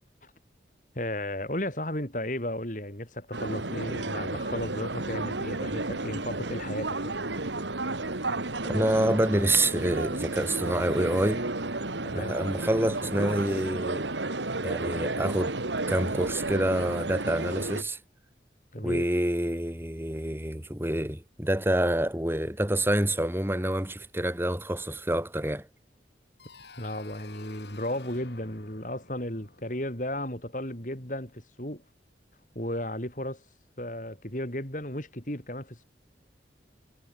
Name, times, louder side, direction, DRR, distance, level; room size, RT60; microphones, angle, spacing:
voice 1, 0.9-7.2 12.0-12.3 18.7-19.1 26.8-31.8 32.5-33.4 33.8-35.8, left 1 dB, 45° left, 6.0 m, -34 dB
sound 1, 3.3-17.8, right 2 dB, 85° right, 2.5 m, -32 dB
voice 2, 8.7-11.5 12.1-14.1 14.6-15.6 15.9-18.0 18.8-25.7, right 1 dB, 15° right, 2.8 m, -27 dB
sound 2, 26.4-31.1, left 3 dB, 70° left, 6.1 m, -51 dB
head